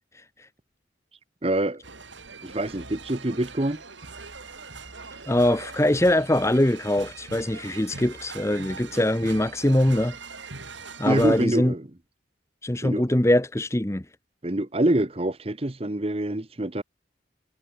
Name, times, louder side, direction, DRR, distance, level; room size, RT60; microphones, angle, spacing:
voice 1, 1.4-1.8 2.4-3.8 11.1-11.9 12.8-13.0 14.4-16.8, right 1 dB, 30° right, 1.0 m, -25 dB
sound 1, 1.8-11.5, right 4 dB, 80° right, 6.8 m, -41 dB
voice 2, 5.3-10.1 11.0-11.7 12.6-14.0, left 1 dB, 15° left, 0.9 m, -22 dB
head